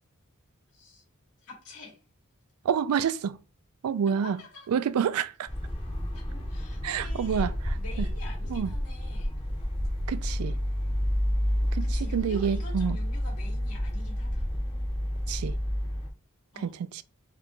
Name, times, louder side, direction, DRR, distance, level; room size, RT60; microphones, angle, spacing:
voice 1, 0.7-1.0 1.4-2.0 4.1-4.7 6.1-9.3 11.8-14.5 16.5-16.7, left 2 dB, 85° left, 2.3 m, -47 dB
voice 2, 2.6-3.4 3.8-4.4 4.7-5.5 6.8-7.7 8.5-8.7 10.1-10.6 11.7-13.0 15.3-15.6 16.6-17.0, right 7 dB, 75° right, 0.3 m, -28 dB
sound 1, 5.5-16.1, equal, 25° left, 0.7 m, -30 dB
4.7 x 2.3 x 3.7 m
head